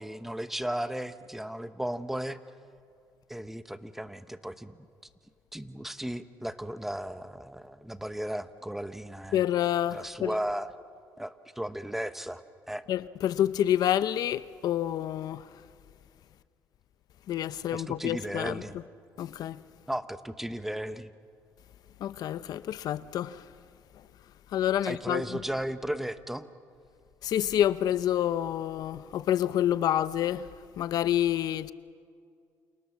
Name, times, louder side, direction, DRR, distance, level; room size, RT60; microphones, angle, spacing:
voice 1, 0.0-2.4 3.3-4.8 5.5-9.4 9.9-10.7 11.2-12.8 17.7-18.8 19.9-21.1 24.8-26.5, right 1 dB, 5° right, 1.0 m, -35 dB
voice 2, 9.3-10.3 12.9-15.6 17.3-18.8 19.2-19.6 22.0-23.5 23.9-24.0 24.5-25.4 27.2-31.7, left 11 dB, 65° left, 0.6 m, -28 dB
29.5 x 27.5 x 7.3 m
cardioid pair, 120°, 7 cm